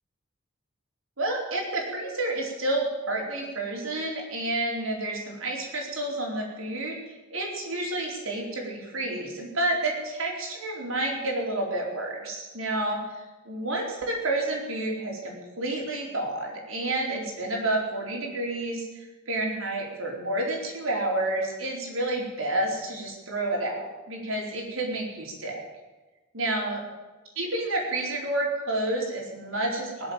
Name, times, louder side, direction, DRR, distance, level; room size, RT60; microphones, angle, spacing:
voice 1, 1.2-6.9 7.3-13.2 13.4-25.6 26.3-26.8 27.4-30.1, right 2 dB, 90° right, -1 dB, 4.5 m, -30 dB
20.5 x 7.8 x 9.0 m, 1.2 s
head